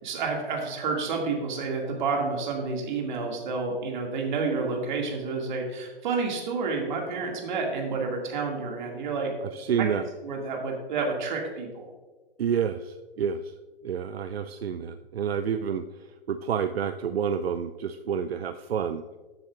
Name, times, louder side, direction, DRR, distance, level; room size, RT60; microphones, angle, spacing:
voice 1, 0.0-9.3 10.2-11.9, right 4 dB, 50° right, 0 dB, 2.2 m, -29 dB
voice 2, 9.5-10.1 12.4-13.5 13.8-15.8 16.3-19.0, right 7 dB, 85° right, 9 dB, 0.5 m, -29 dB
13.5 x 7.5 x 2.5 m, 1.3 s
hypercardioid pair, 140°, 30 cm